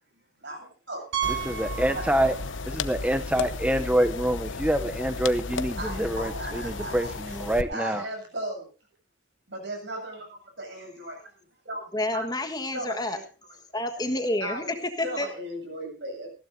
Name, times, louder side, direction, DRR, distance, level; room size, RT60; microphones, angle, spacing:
voice 1, 0.4-1.0 1.9-2.0 5.8-7.4 7.7-8.7 9.5-11.2 11.6-11.8 12.1-12.3 12.7-13.2 13.7-13.8 14.4-16.3, right 1 dB, 65° right, 2 dB, 8.0 m, -36 dB
Piano, 1.1-2.7 3.0-3.1 3.7-3.8 4.1-4.2 6.2-6.3, right 10 dB, 90° right, 3.2 m, -33 dB
sound 1, 1.2-7.6, left 4 dB, 85° left, 1.0 m, -34 dB
voice 2, 1.3-2.4 2.6-8.1, right 1 dB, 5° right, 10 dB, 0.6 m, -26 dB
voice 3, 11.9-13.2 13.7-14.6 15.0-15.3, left 1 dB, 20° left, 6 dB, 1.4 m, -29 dB
19.5 x 15.5 x 2.7 m, 0.33 s
head